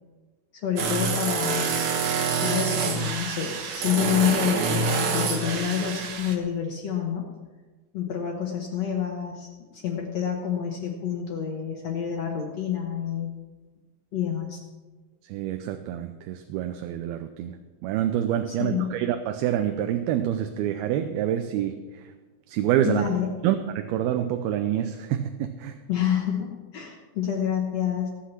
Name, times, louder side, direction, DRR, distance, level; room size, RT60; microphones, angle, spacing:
voice 1, 0.5-1.8 2.4-7.3 7.9-13.3 14.1-14.6 18.5-18.9 22.9-23.4 25.9-28.1, left 9 dB, 60° left, 1 dB, 1.8 m, -28 dB
sound 1, 0.8-6.4, right 5 dB, 60° right, 2.3 m, -27 dB
voice 2, 15.3-21.7 22.5-23.1 23.4-25.7, right 11 dB, 85° right, 7 dB, 2.6 m, -27 dB
17.0 x 8.4 x 5.9 m, 1.3 s
omnidirectional pair, 4.3 m